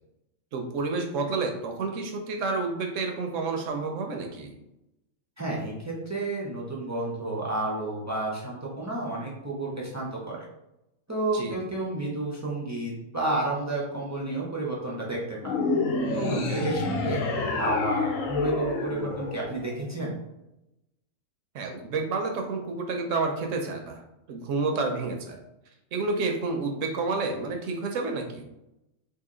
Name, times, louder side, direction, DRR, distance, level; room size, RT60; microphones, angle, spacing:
voice 1, 0.5-4.6 11.3-11.6 16.3-16.6 21.5-24.0 24.3-25.4 25.9-28.4, right 3 dB, 70° right, 3 dB, 0.9 m, -30 dB
voice 2, 5.4-10.4 11.1-15.6 16.1-17.3 17.6-20.2, right 2 dB, 25° right, -5 dB, 0.4 m, -31 dB
sound 1, 15.4-19.9, left 3 dB, 75° left, 1.0 m, -28 dB
2.8 x 2.6 x 3.7 m, 0.89 s
omnidirectional pair, 1.4 m